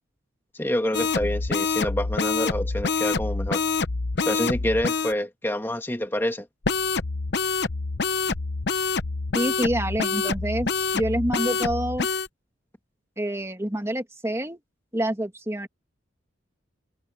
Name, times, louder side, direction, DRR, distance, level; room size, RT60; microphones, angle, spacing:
voice 1, 0.5-3.6 4.3-6.5, left 1 dB, 10° left, 1.6 m, -27 dB
sound 1, 0.9-5.1 6.6-12.3, left 4 dB, 60° left, 0.9 m, -26 dB
voice 2, 9.3-12.1 13.2-14.6 14.9-15.7, right 1 dB, 15° right, 2.4 m, -27 dB
head